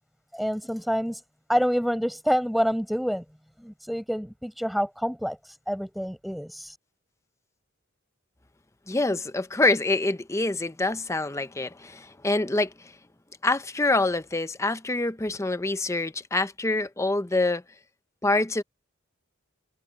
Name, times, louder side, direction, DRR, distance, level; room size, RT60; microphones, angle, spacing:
voice 1, 0.3-1.2 1.5-3.2 3.6-6.8, equal, ahead, 5.1 m, -27 dB
voice 2, 8.9-12.7 13.4-17.6 18.2-18.6, left 2 dB, 15° left, 0.6 m, -26 dB
head